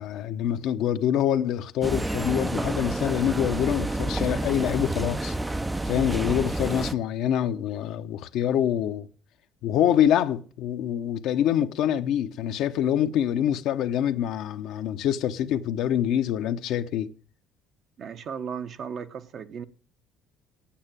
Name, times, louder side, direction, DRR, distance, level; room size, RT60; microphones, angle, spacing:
voice 1, 0.0-5.3 5.8-9.1 9.6-17.1, left 10 dB, 70° left, 0.9 m, -25 dB
sound 1, 1.8-6.9, right 2 dB, 10° right, 0.5 m, -29 dB
voice 2, 18.0-19.7, right 7 dB, 55° right, 1.1 m, -35 dB
8.8 x 8.7 x 8.9 m
supercardioid pair, 80°, 0 cm